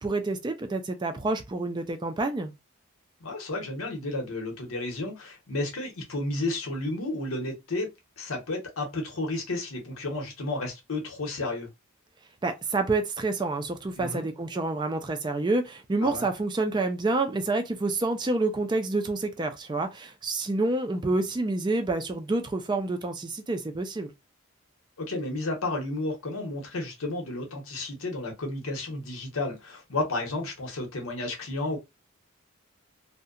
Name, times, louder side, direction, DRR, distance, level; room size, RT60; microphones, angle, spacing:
voice 1, 0.0-2.5 12.4-24.1, right 2 dB, 20° right, 0.3 m, -28 dB
voice 2, 3.2-7.9 8.2-11.7 14.0-14.2 16.0-16.3 25.1-31.8, left 2 dB, 90° left, 0.9 m, -32 dB
2.7 x 2.1 x 2.4 m
head